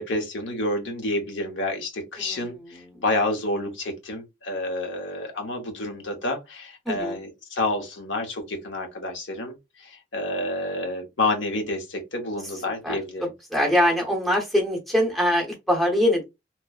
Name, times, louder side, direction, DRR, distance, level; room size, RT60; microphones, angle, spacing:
voice 1, 0.0-13.3, left 2 dB, 70° left, 0.8 m, -29 dB
voice 2, 2.7-3.0 6.9-7.2 12.8-12.9 13.5-16.2, equal, ahead, 0.8 m, -23 dB
3.0 x 2.0 x 2.3 m
head